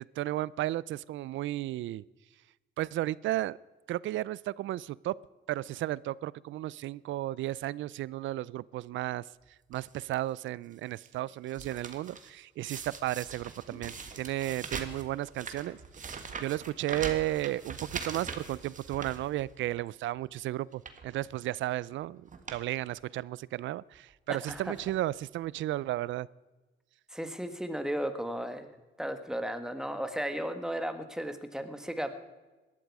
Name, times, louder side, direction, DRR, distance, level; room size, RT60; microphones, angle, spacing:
voice 1, 0.2-2.0 2.8-3.6 3.9-5.2 5.5-9.3 9.7-26.3, right 15 dB, 75° right, 22 dB, 0.4 m, -34 dB
sound 1, 9.7-10.1 10.7-12.3 12.7-19.8 20.2-20.3 20.7-21.1 21.9-22.0 22.3-22.6 22.9-23.0 23.9-24.1 24.5-25.0 25.7-25.8 26.0-26.1, right 5 dB, 40° right, 1.7 m, -42 dB
voice 2, 24.3-24.7 27.1-28.7 29.0-32.1, equal, 5° right, 8 dB, 1.6 m, -35 dB
18.5 x 12.5 x 4.8 m, 1.2 s
cardioid pair, 90°, 20 cm